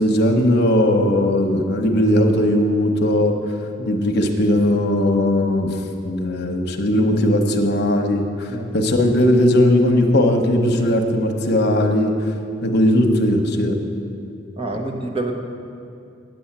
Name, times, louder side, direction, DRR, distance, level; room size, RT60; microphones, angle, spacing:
voice 1, 0.0-3.4 3.9-5.8 6.0-8.5 8.7-12.1 12.6-13.8, left 1 dB, 60° left, 3 dB, 0.9 m, -18 dB
voice 2, 14.6-15.3, right 2 dB, 30° right, 3 dB, 1.0 m, -27 dB
9.3 x 7.0 x 8.6 m, 2.6 s
head